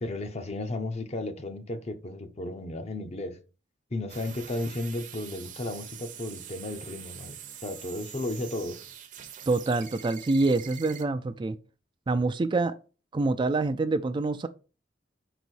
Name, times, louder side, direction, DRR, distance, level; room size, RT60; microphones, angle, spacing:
voice 1, 0.0-3.4 3.9-8.8, left 2 dB, 35° left, 0.7 m, -34 dB
sound 1, 4.1-11.0, right 9 dB, 45° right, 0.7 m, -44 dB
voice 2, 9.5-11.6 12.1-12.8 13.1-14.5, right 3 dB, 25° right, 0.3 m, -26 dB
5.5 x 4.1 x 4.5 m
head